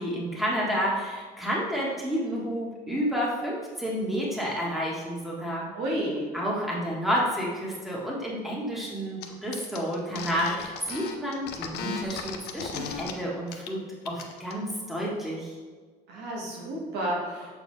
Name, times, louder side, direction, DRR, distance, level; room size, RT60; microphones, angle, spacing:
voice 1, 0.0-5.7 6.3-15.6, equal, ahead, -5 dB, 1.6 m, -30 dB
voice 2, 5.7-6.3 16.1-17.6, right 1 dB, 90° right, -3 dB, 1.8 m, -31 dB
sound 1, 9.2-9.3 9.5-13.1 13.5-13.7 14.0-14.5, left 7 dB, 75° left, 0.7 m, -36 dB
7.4 x 4.4 x 3.3 m, 1.4 s
cardioid pair, 110°, 17 cm